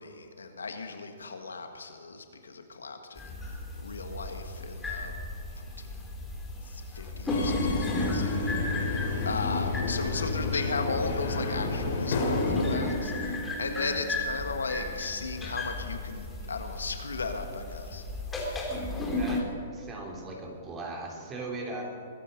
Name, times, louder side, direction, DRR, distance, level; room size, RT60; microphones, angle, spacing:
voice 1, 0.0-5.1 5.5-6.1 6.6-8.5 8.8-9.0 9.2-18.0, left 4 dB, 90° left, 6 dB, 1.6 m, -36 dB
sound 1, 3.2-19.4, left 1 dB, 10° left, 2.7 m, -34 dB
Subway metro underground, 7.3-12.7, left 3 dB, 55° left, 3.0 m, -30 dB
voice 2, 19.2-19.5 19.7-21.8, right 2 dB, 20° right, 0 dB, 3.1 m, -38 dB
22.0 x 10.0 x 5.3 m, 2.6 s
hypercardioid pair, 130°, 0 cm